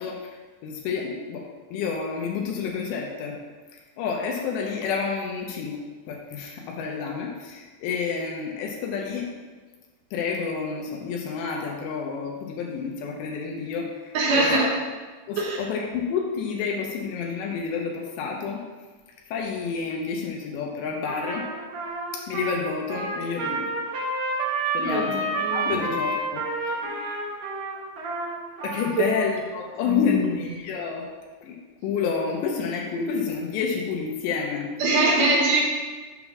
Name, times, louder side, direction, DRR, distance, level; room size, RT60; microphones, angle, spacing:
voice 1, 0.0-3.4 4.0-5.8 6.1-9.3 10.1-14.6 15.3-18.7 19.3-21.5 22.1-23.7 24.7-27.3 28.6-31.1 31.4-34.7, left 5 dB, 80° left, 0 dB, 2.8 m, -29 dB
voice 2, 14.1-14.7 15.4-15.6 24.8-25.8 29.0-29.1 29.9-30.2 34.8-35.6, right 2 dB, 75° right, -4 dB, 1.9 m, -23 dB
Trumpet, 21.0-29.3, right 2 dB, 55° right, 2.0 m, -30 dB
8.0 x 3.7 x 6.0 m, 1.3 s
omnidirectional pair, 5.3 m